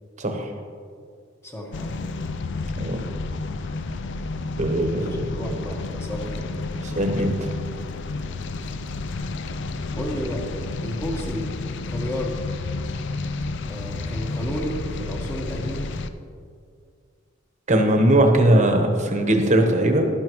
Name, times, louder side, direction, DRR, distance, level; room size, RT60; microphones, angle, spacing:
voice 1, 0.2-0.5 2.8-3.0 4.6-5.1 6.8-7.5 17.7-20.0, right 1 dB, 40° right, 4 dB, 1.1 m, -19 dB
voice 2, 1.4-2.0 4.9-6.5 10.0-10.4 10.8-11.5 11.9-12.4 13.7-15.9, equal, 15° left, 0 dB, 1.4 m, -32 dB
sound 1, 1.7-16.1, left 3 dB, 65° left, 0.5 m, -31 dB
12.0 x 10.5 x 3.1 m, 2.2 s
head